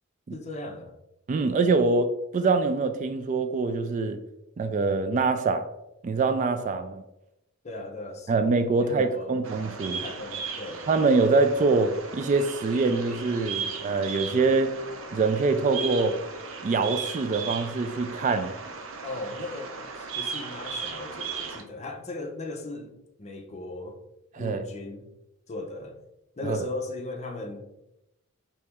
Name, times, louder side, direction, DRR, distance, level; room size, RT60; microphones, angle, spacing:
voice 1, 0.3-0.9 7.6-8.3 8.8-9.4 10.0-10.9 19.0-24.0 24.4-25.1 25.5-26.0 26.4-27.6, left 2 dB, 35° left, 3 dB, 0.6 m, -37 dB
voice 2, 1.3-4.2 4.6-5.7 6.0-7.0 8.3-10.0 10.9-14.7 15.1-16.2 16.6-18.5 24.4-24.6 26.4-26.6, right 3 dB, 40° right, 9 dB, 0.3 m, -24 dB
Bird vocalization bird call bird song, 9.4-21.6, right 5 dB, 75° right, 0.6 m, -36 dB
4.1 x 2.9 x 3.5 m, 0.88 s
head